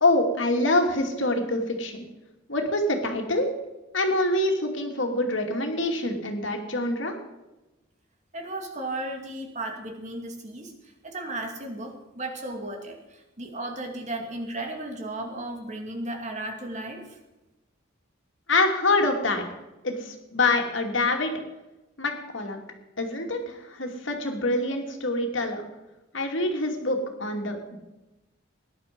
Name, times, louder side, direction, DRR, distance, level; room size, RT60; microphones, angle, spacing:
voice 1, 0.0-2.1 2.5-3.5 3.9-7.2 18.5-19.4 19.8-21.3 22.0-22.6 23.0-25.7 26.1-27.8, left 2 dB, 65° left, 3 dB, 2.6 m, -25 dB
voice 2, 8.3-17.2, right 1 dB, 35° right, 3 dB, 2.5 m, -35 dB
18.5 x 11.0 x 5.3 m, 1.0 s
head